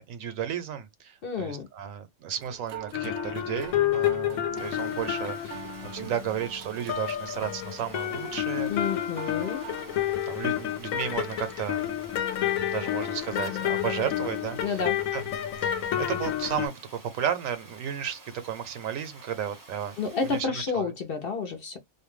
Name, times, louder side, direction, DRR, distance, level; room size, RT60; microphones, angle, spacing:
voice 1, 0.0-8.7 9.2-9.3 10.0-12.1 12.6-14.8 15.1-15.2 15.6-20.0 20.2-20.9, right 9 dB, 80° right, 1.1 m, -34 dB
voice 2, 1.2-1.7 8.7-9.6 14.6-15.0 20.0-21.8, left 5 dB, 55° left, 0.7 m, -30 dB
sound 1, 2.4-10.0, right 9 dB, 60° right, 0.7 m, -44 dB
sound 2, 2.9-6.6 6.9-16.7, left 11 dB, 80° left, 1.0 m, -30 dB
Water, 4.6-20.4, right 2 dB, 25° right, 0.5 m, -51 dB
2.5 x 2.2 x 3.2 m
omnidirectional pair, 1.4 m